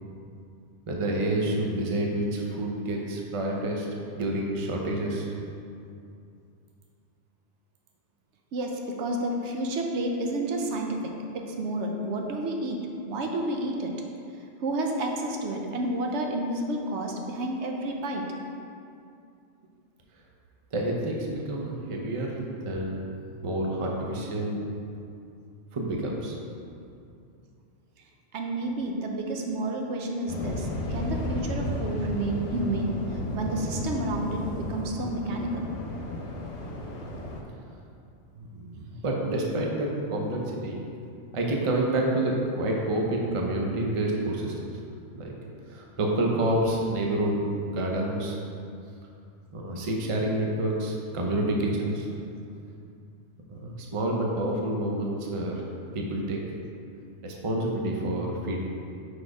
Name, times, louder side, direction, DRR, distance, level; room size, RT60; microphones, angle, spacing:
voice 1, 0.9-3.9 4.1-5.3 20.7-23.1 23.4-24.7 25.7-26.4 38.3-40.8 41.3-44.7 45.1-45.3 45.7-48.4 49.5-52.1 53.5-55.6 55.9-56.4 57.2-58.6, right 1 dB, 35° right, -1 dB, 0.6 m, -28 dB
voice 2, 8.5-12.8 13.1-13.9 14.6-18.3 28.3-33.0 33.3-35.6 37.2-37.3, right 1 dB, 75° right, 2 dB, 0.9 m, -30 dB
Waves surf, 30.3-37.4, left 1 dB, 70° left, 1.0 m, -33 dB
4.8 x 4.3 x 4.7 m, 2.5 s
omnidirectional pair, 1.2 m